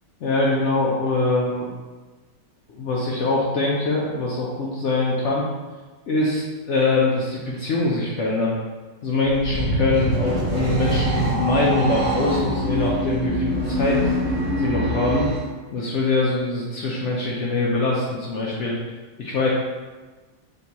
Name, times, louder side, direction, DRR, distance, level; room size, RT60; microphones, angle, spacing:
voice 1, 0.2-1.7 2.7-5.4 6.1-8.6 9.0-14.1 14.6-15.3 15.7-18.8 19.2-19.5, left 2 dB, 90° left, -4 dB, 0.6 m, -23 dB
sound 1, 9.2-15.4, equal, 50° right, 1.3 m, -24 dB
3.9 x 3.7 x 2.8 m, 1.3 s
omnidirectional pair, 2.0 m